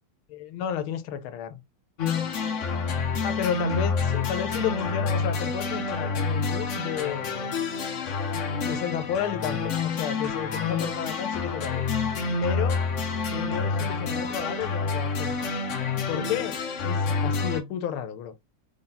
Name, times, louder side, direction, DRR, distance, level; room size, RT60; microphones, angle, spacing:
voice 1, 0.3-1.6 3.2-7.6 8.6-11.8 12.4-12.8 13.3-15.5 16.1-18.3, left 9 dB, 90° left, 1.5 m, -32 dB
sound 1, 2.0-17.6, left 4 dB, 60° left, 0.8 m, -28 dB
4.2 x 3.8 x 2.7 m
omnidirectional pair, 2.3 m